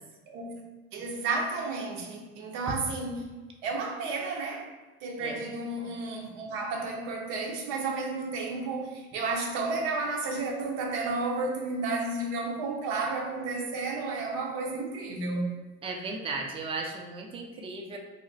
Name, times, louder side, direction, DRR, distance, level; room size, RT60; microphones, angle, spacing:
voice 1, 0.9-3.3 3.6-4.7 5.0-15.5, right 3 dB, 85° right, 0.7 m, -32 dB
voice 2, 15.8-18.0, right 3 dB, 20° right, 0.4 m, -35 dB
2.5 x 2.0 x 3.9 m
supercardioid pair, 105°, 29 cm